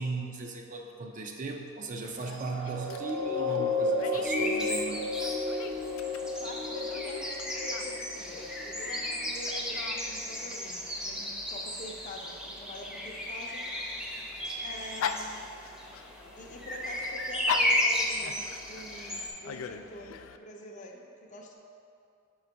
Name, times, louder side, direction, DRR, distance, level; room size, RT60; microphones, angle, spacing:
voice 1, 0.0-5.0, right 3 dB, 40° right, 2 dB, 0.5 m, -37 dB
Dog, 2.0-20.4, left 7 dB, 90° left, 0.3 m, -42 dB
sound 1, 2.3-9.0 9.6-9.7, left 2 dB, 80° right, 0.8 m, -33 dB
sound 2, 4.2-19.3, left 1 dB, 5° right, 0.7 m, -34 dB
voice 2, 6.4-13.6 14.6-15.3 16.4-19.2 19.4-21.5, left 1 dB, 40° left, 0 dB, 0.6 m, -45 dB
6.8 x 3.9 x 4.5 m, 2.4 s
head